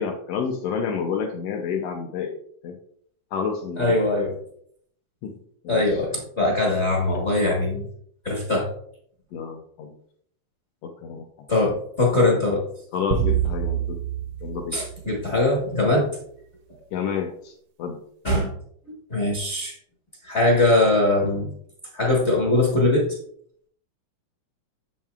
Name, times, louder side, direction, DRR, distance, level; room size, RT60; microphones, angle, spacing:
voice 1, 0.0-2.4 2.6-2.7 3.3-4.0 5.2-5.3 5.6-6.0 7.1-7.2 9.3-10.0 10.8-11.3 12.9-14.0 14.4-14.8 16.9-17.5 17.8-18.0, left 6 dB, 85° left, 4 dB, 1.4 m, -29 dB
voice 2, 3.8-4.3 5.7-7.8 8.2-8.7 11.5-12.6 14.7-16.1 18.2-18.5 19.1-19.7 20.2-21.5 21.9-23.1, left 2 dB, 60° left, -4 dB, 0.7 m, -21 dB
sound 1, 13.1-15.6, right 10 dB, 80° right, 1.6 m, -27 dB
7.3 x 7.1 x 2.4 m, 0.64 s
omnidirectional pair, 3.6 m